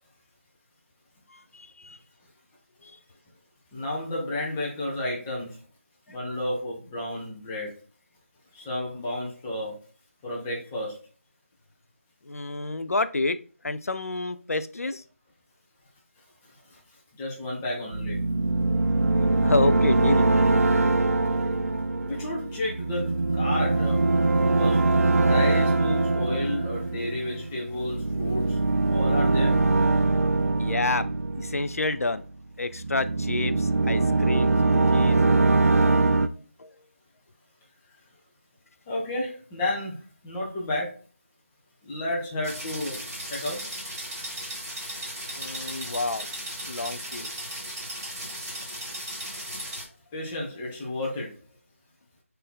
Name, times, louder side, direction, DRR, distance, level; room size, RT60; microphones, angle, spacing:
voice 1, 1.3-2.0 2.8-3.0 6.1-6.4 12.2-13.4 13.6-15.0 19.4-20.3 30.6-31.0 31.4-32.2 32.6-35.5 35.8-36.2 36.6-36.8 45.3-46.3 46.7-47.3, left 3 dB, 85° left, 11 dB, 0.4 m, -29 dB
voice 2, 3.7-5.6 6.1-7.7 8.5-9.8 10.2-11.0 16.7-16.8 17.2-18.2 22.1-24.1 24.6-24.8 25.2-28.6 28.9-29.6 38.9-41.0 41.8-43.7 50.1-51.3, left 1 dB, 5° left, -3 dB, 0.5 m, -32 dB
sound 1, 17.9-32.2 32.7-36.3, right 3 dB, 80° right, 0.4 m, -23 dB
sound 2, 42.4-49.8, right 1 dB, 10° right, 1.7 m, -36 dB
4.3 x 2.6 x 3.7 m, 0.37 s
figure-of-eight pair, 170°, 8 cm